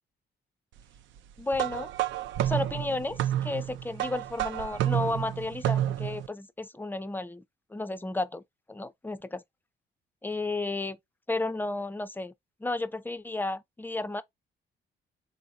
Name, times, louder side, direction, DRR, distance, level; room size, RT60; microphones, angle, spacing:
voice 1, 1.4-1.9 2.4-7.4 7.7-8.4 8.7-9.4 10.2-11.0 11.3-12.3 12.6-14.2, left 2 dB, 10° left, 0.4 m, -33 dB
sound 1, 1.5-6.3, right 12 dB, 70° right, 0.4 m, -30 dB
3.7 x 2.6 x 2.3 m
cardioid pair, 90°, 20 cm